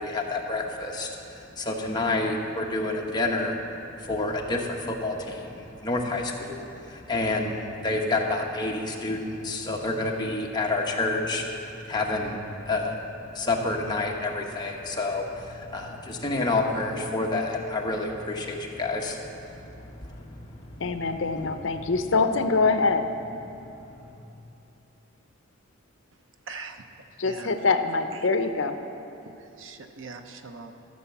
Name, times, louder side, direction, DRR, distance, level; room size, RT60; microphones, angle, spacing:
voice 1, 0.0-20.8 21.3-21.5, left 2 dB, 20° left, 0 dB, 1.1 m, -29 dB
sound 1, 13.0-24.2, left 1 dB, 45° left, 3.1 m, -48 dB
voice 2, 20.8-23.1 27.2-28.8, left 4 dB, 65° left, 8 dB, 0.6 m, -24 dB
voice 3, 26.5-26.8 27.2-27.5 28.1-28.3 29.2-30.7, right 4 dB, 65° right, 7 dB, 0.7 m, -42 dB
13.5 x 6.6 x 7.2 m, 2.8 s
head